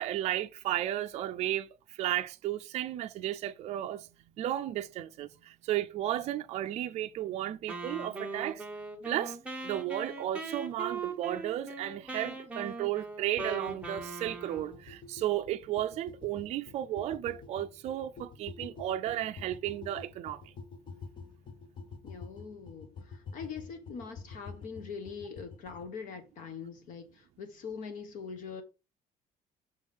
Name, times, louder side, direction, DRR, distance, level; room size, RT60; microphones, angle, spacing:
voice 1, 0.0-4.1 4.4-8.6 9.0-9.4 9.6-20.4, right 13 dB, 45° right, 0.4 m, -34 dB
Wind instrument woodwind instrument, 7.7-14.8, right 3 dB, 10° right, 0.9 m, -40 dB
sound 1, 13.4-25.8, left 4 dB, 30° left, 0.7 m, -48 dB
voice 2, 22.0-28.6, left 6 dB, 60° left, 1.1 m, -43 dB
6.2 x 3.5 x 5.1 m
cardioid pair, 175°, 16 cm